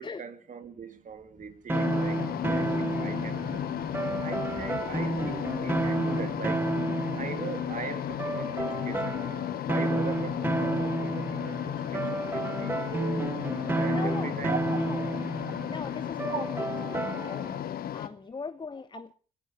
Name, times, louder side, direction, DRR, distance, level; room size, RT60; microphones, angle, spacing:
voice 1, 0.0-3.6 4.0-6.6 7.2-13.4 13.7-14.8 16.3-16.4 16.9-17.0 17.7-17.8, right 6 dB, 50° right, 2.1 m, -40 dB
sound 1, 1.0-9.1 9.4-10.6, equal, 5° left, 6.0 m, -54 dB
sound 2, 1.7-18.1, left 11 dB, 65° left, 1.3 m, -34 dB
sound 3, 1.7-17.6, right 2 dB, 15° right, 0.7 m, -31 dB
voice 2, 13.9-14.4 14.7-15.0 15.7-17.7 17.9-19.1, left 4 dB, 25° left, 0.8 m, -40 dB
22.0 x 13.5 x 4.4 m
hypercardioid pair, 45°, 17 cm